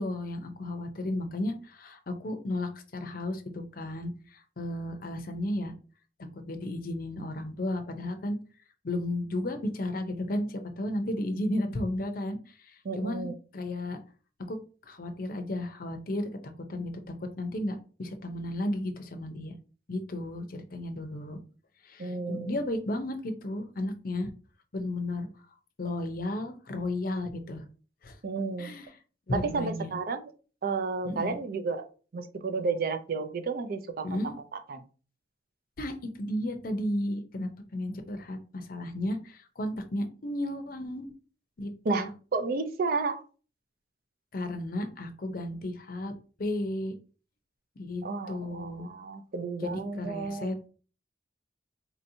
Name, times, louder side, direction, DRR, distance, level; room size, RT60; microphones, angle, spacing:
voice 1, 0.0-5.7 6.5-8.4 8.8-14.0 14.5-14.6 14.9-19.5 19.9-21.4 21.8-24.3 24.7-25.3 25.8-27.6 28.0-28.2 28.6-28.9 29.3-30.0 31.0-31.4 34.0-34.3 35.8-41.1 41.6-42.1 44.3-46.1 46.4-46.9 47.8-48.9 49.6-50.7, left 1 dB, 50° left, 7 dB, 0.6 m, -33 dB
voice 2, 12.8-13.3 22.0-22.6 28.2-28.7 29.3-30.3 30.6-31.8 32.1-34.8 41.8-43.2 48.0-50.5, right 4 dB, 55° right, 8 dB, 0.5 m, -32 dB
4.2 x 2.8 x 2.6 m, 0.37 s
head